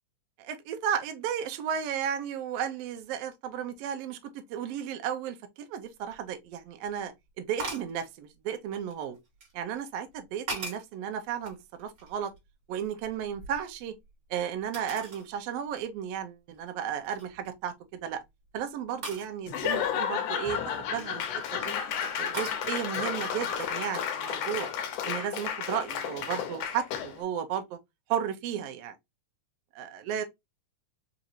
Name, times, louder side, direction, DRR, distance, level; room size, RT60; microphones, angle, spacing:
voice 1, 0.4-9.2 9.5-12.3 12.7-13.9 14.3-18.2 18.5-21.2 21.5-21.7 22.2-24.7 25.0-27.8 28.1-28.9 29.7-30.2, right 9 dB, 75° right, 1.4 m, -34 dB
sound 1, 6.1-6.2 7.6-7.9 8.7-9.5 10.1-10.9 11.4-12.5 12.8-14.1 14.7-15.3 15.8-15.9 16.5-16.7 17.0-17.5 19.0-19.3 21.0-21.5 22.3-22.6, right 3 dB, 40° right, 1.7 m, -40 dB
Laughter / Applause / Crowd, 19.5-27.2, left 8 dB, 80° left, 1.4 m, -32 dB
5.0 x 2.5 x 2.7 m
omnidirectional pair, 3.5 m